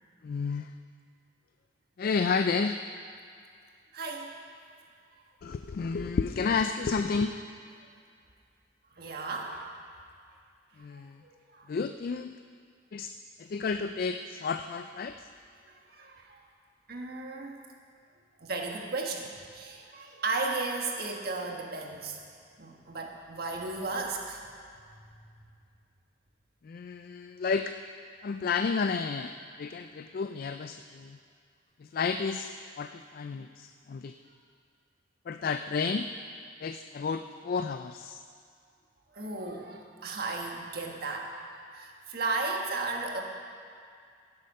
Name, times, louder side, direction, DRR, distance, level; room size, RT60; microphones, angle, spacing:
voice 1, 0.2-0.7 2.0-2.8 5.4-7.4 10.8-11.2 11.7-12.4 12.9-13.1 13.4-15.3 26.6-27.8 28.2-31.2 31.8-32.5 32.8-34.2 35.3-36.1 36.6-38.2, left 5 dB, 50° left, 8 dB, 0.3 m, -31 dB
voice 2, 3.9-4.3 9.0-9.6 11.2-11.7 15.9-16.4 16.9-17.6 18.4-22.2 22.6-24.4 39.1-43.2, right 3 dB, 55° right, 1 dB, 1.5 m, -35 dB
16.0 x 7.5 x 5.5 m, 2.2 s
head